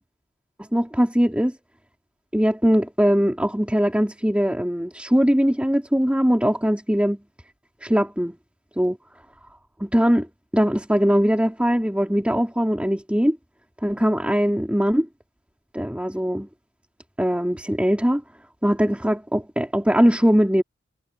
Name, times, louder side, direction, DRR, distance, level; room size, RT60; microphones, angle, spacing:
voice 1, 0.6-1.5 2.3-7.2 7.8-8.3 8.8-9.0 9.8-10.3 10.5-13.4 13.8-15.1 15.7-16.5 17.2-18.2 18.6-20.6, equal, 5° right, 3.3 m, -21 dB
head